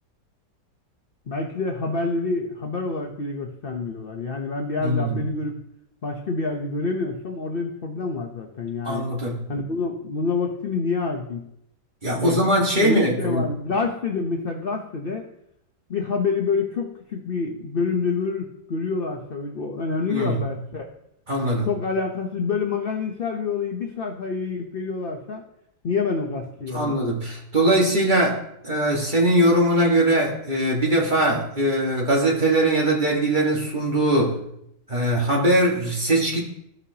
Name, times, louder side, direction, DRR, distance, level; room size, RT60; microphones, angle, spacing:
voice 1, 1.3-5.5 6.0-9.1 9.5-11.5 12.1-12.4 12.8-15.3 15.9-20.9 21.6-25.4 25.8-27.0, left 4 dB, 45° left, 2 dB, 0.7 m, -27 dB
voice 2, 4.8-5.2 8.8-9.5 12.0-13.5 20.1-20.4 21.3-21.7 26.7-34.4 34.9-36.4, right 1 dB, 30° right, -2 dB, 1.7 m, -21 dB
15.5 x 5.7 x 2.8 m, 0.77 s
omnidirectional pair, 1.8 m